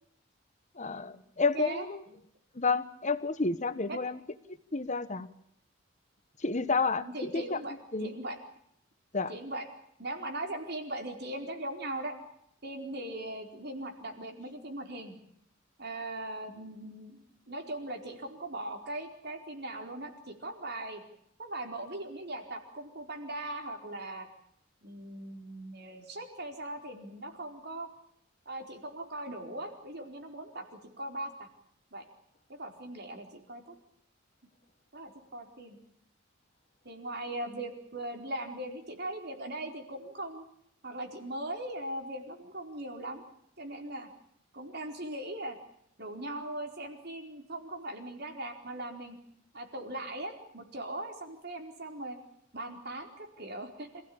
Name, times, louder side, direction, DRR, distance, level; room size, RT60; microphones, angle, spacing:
voice 1, 0.8-2.0 2.5-4.2 4.7-5.3 6.4-7.1 7.3-7.6 7.9-8.1 9.1-9.3, left 4 dB, 35° left, 11 dB, 1.3 m, -30 dB
voice 2, 1.5-1.9 3.9-4.0 7.0-8.4 9.3-9.7 10.0-12.2 12.6-15.1 15.8-21.0 21.4-24.3 24.8-27.9 28.5-31.5 31.9-32.1 32.5-33.7 34.9-35.8 36.8-40.4 40.8-43.2 43.6-44.1 44.5-45.6 46.0-49.2 49.5-52.2 52.5-54.0, right 1 dB, 55° right, 4 dB, 4.4 m, -39 dB
27.5 x 16.0 x 8.7 m, 0.73 s
head